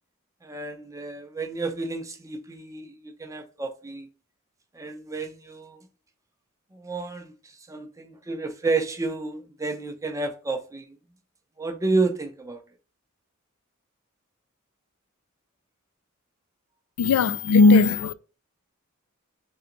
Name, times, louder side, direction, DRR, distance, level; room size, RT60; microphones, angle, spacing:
voice 1, 0.4-4.1 4.7-5.9 6.7-10.9 11.6-12.6, right 3 dB, 15° right, 0.5 m, -30 dB
voice 2, 17.0-18.1, left 3 dB, 80° left, 0.3 m, -17 dB
3.4 x 2.9 x 3.7 m
head